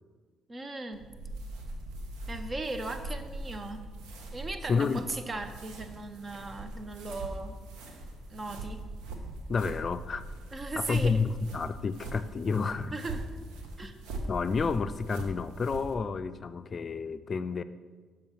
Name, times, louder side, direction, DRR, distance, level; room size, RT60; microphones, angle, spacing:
voice 1, 0.5-1.0 2.3-3.9 4.3-7.6 8.3-8.8 10.5-11.2 12.9-13.2 13.8-13.9, right 2 dB, 35° right, 9 dB, 0.9 m, -37 dB
sound 1, 0.9-15.9, right 2 dB, 75° right, 1.0 m, -41 dB
voice 2, 4.7-5.0 9.5-10.3 10.8-13.0 14.3-17.6, left 5 dB, 45° left, 12 dB, 0.3 m, -30 dB
6.8 x 5.3 x 5.7 m, 1.5 s
hypercardioid pair, 55°, 0 cm